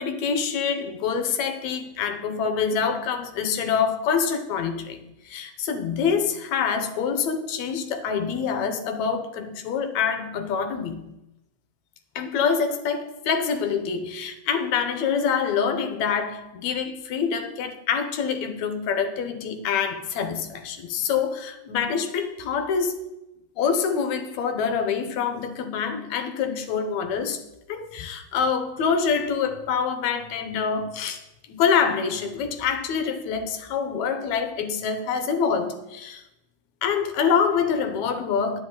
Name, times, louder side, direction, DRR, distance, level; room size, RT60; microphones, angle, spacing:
voice 1, 0.0-11.2 12.2-23.1 23.6-27.4 27.7-36.2 36.8-38.6, left 6 dB, 70° left, 2.1 m, -26 dB
11.0 x 10.0 x 3.9 m
omnidirectional pair, 3.6 m